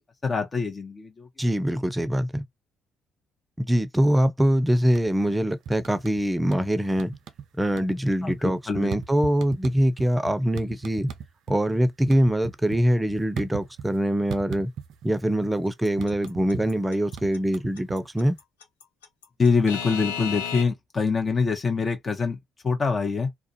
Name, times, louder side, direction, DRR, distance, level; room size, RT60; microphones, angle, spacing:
voice 1, 0.2-1.3 8.2-8.9 19.4-22.4 22.6-23.3, left 4 dB, 35° left, 0.7 m, -25 dB
voice 2, 1.4-2.4 3.6-7.1 7.6-11.1 11.5-14.7 15.0-18.4, equal, 15° right, 0.6 m, -23 dB
sound 1, 4.8-5.3 5.7-6.7 7.0-7.5 7.7-11.6 11.9-14.0 14.3-15.2 15.4-18.3, right 7 dB, 65° right, 0.4 m, -38 dB
Alarm / Clock, 15.8-20.6, left 8 dB, 85° left, 0.5 m, -33 dB
2.4 x 2.1 x 2.7 m
hypercardioid pair, 45°, 0 cm